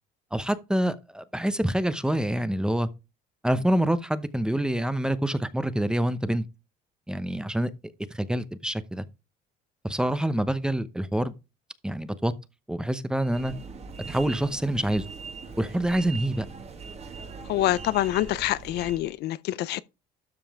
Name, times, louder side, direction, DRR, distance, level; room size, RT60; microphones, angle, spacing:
voice 1, 0.3-2.9 3.4-6.5 7.1-7.7 8.1-9.0 9.8-11.3 11.8-12.3 12.7-13.5 14.1-15.1 15.6-16.5, right 1 dB, 5° right, 0.8 m, -26 dB
sound 1, 13.2-19.1, right 4 dB, 35° right, 1.8 m, -41 dB
voice 2, 17.5-19.8, left 14 dB, 65° left, 0.5 m, -26 dB
12.5 x 5.5 x 3.6 m
cardioid pair, 115°, 18 cm